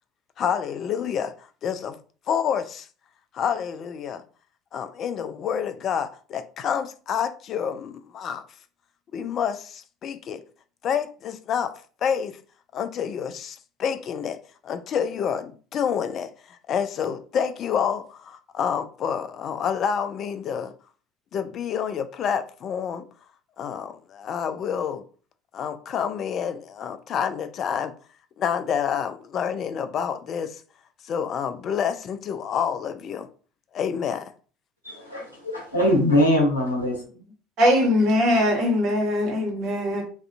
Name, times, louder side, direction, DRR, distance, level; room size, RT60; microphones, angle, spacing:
voice 1, 0.4-1.3 1.6-2.0 2.3-2.9 3.3-4.2 4.7-8.4 9.1-10.4 10.8-11.7 12.0-12.4 12.7-20.7 21.3-23.0 23.6-25.0 25.5-27.9 28.4-30.6 31.0-33.3 33.7-34.3, left 7 dB, 45° left, 0.3 m, -28 dB
voice 2, 34.8-37.0, left 1 dB, 90° left, 0.7 m, -22 dB
voice 3, 37.6-40.0, left 1 dB, 50° right, 1.2 m, -21 dB
2.5 x 2.4 x 2.2 m
figure-of-eight pair, 65°, 0 cm